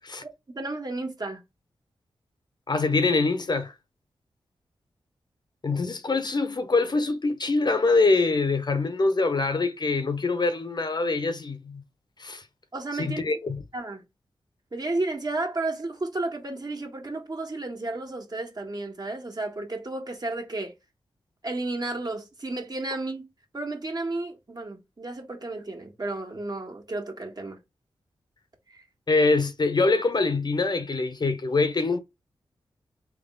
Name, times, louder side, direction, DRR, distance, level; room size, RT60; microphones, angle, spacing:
voice 1, 0.2-1.4 12.7-13.2 13.7-14.0 14.7-20.7 21.4-23.3 23.5-27.6 28.7-28.8, right 2 dB, 40° right, 1.6 m, -32 dB
voice 2, 2.7-3.7 5.6-11.8 12.2-12.4 13.0-13.6 29.1-32.0, left 3 dB, 45° left, 0.8 m, -24 dB
3.5 x 3.0 x 3.9 m
cardioid pair, 40°, 10 cm